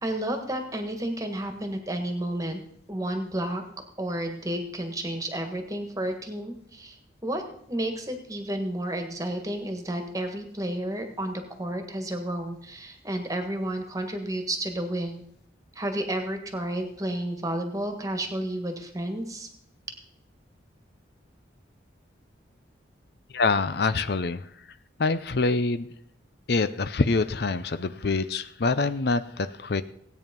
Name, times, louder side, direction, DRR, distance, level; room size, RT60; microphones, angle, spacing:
voice 1, 0.0-2.6 2.9-3.6 4.0-7.0 7.2-7.4 7.7-15.2 15.7-19.5, right 1 dB, 20° right, 6 dB, 1.7 m, -31 dB
voice 2, 23.3-24.4 25.0-25.9 26.5-29.8, left 3 dB, 55° left, 13 dB, 0.6 m, -25 dB
16.5 x 9.2 x 5.3 m, 0.71 s
head